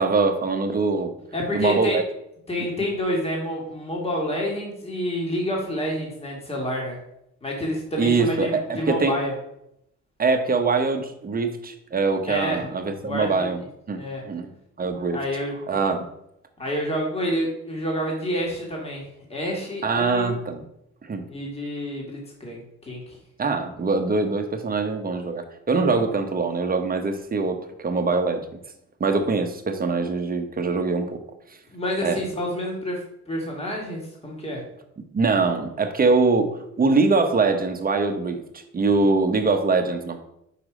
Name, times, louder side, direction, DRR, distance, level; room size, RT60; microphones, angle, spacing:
voice 1, 0.0-1.1 1.5-2.0 8.0-9.1 10.2-13.6 13.9-14.5 14.8-15.2 15.7-16.1 19.8-20.6 21.0-21.3 23.4-28.5 29.0-31.2 31.5-31.6 32.0-32.2 35.1-40.2, right 4 dB, 30° right, 6 dB, 0.9 m, -23 dB
voice 2, 1.3-2.0 2.5-7.0 7.4-9.3 12.3-12.7 13.0-13.5 13.9-14.2 15.1-15.6 16.6-19.0 19.3-20.3 21.3-23.2 31.7-34.7, equal, 20° left, -1 dB, 1.8 m, -28 dB
5.0 x 4.7 x 4.9 m, 0.78 s
cardioid pair, 90°, 30 cm